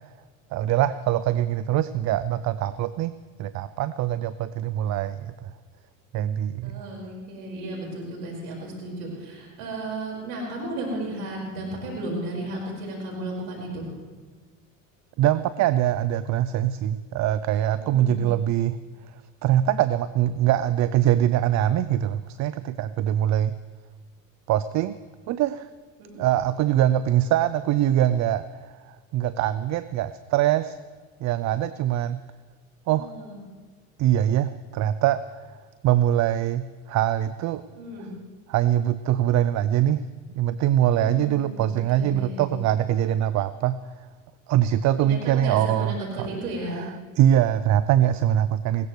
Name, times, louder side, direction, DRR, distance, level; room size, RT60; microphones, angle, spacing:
voice 1, 0.5-3.1 3.4-5.5 6.1-6.8 15.2-18.8 19.4-23.5 24.5-25.0 25.3-25.7 26.2-28.4 28.8-30.8 31.2-32.2 32.9-33.1 34.0-35.2 35.8-37.6 38.5-40.0 40.4-43.8 44.5-46.3 46.8-46.9 47.2-48.9, right 11 dB, 40° right, 15 dB, 0.5 m, -23 dB
voice 2, 6.6-13.9 17.8-18.2 26.0-26.2 32.9-33.4 37.8-38.1 40.9-42.5 45.0-46.9, right 1 dB, 70° right, -2 dB, 5.3 m, -34 dB
20.0 x 17.5 x 3.2 m, 1.4 s
hypercardioid pair, 70°, 42 cm